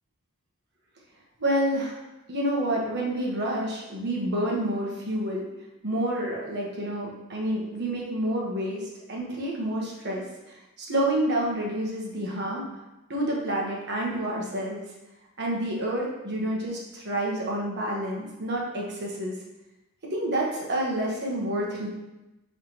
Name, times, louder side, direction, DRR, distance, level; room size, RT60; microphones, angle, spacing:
voice 1, 1.4-2.0 2.3-5.5 5.8-12.7 13.1-14.8 15.4-19.3 20.1-21.9, right 1 dB, 50° right, -2 dB, 1.3 m, -28 dB
9.3 x 3.5 x 3.0 m, 1.0 s
head